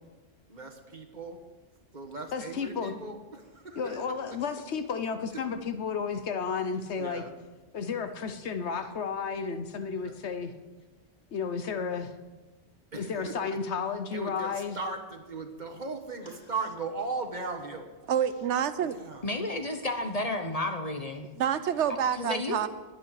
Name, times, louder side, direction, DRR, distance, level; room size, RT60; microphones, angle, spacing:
voice 1, 0.5-1.4 1.9-4.0 7.0-7.3 9.9-10.2 12.9-13.6 14.1-17.9 18.8-19.2, right 3 dB, 40° right, 4 dB, 1.5 m, -38 dB
voice 2, 2.3-2.9 3.8-7.2 7.7-10.5 11.3-12.1 13.0-14.8, left 5 dB, 70° left, 9 dB, 1.2 m, -32 dB
voice 3, 18.1-19.0 21.4-22.7, right 9 dB, 75° right, 13 dB, 0.9 m, -27 dB
voice 4, 19.2-21.3 22.2-22.7, left 2 dB, 35° left, 5 dB, 1.0 m, -31 dB
22.0 x 8.4 x 4.9 m, 1.2 s
omnidirectional pair, 1.2 m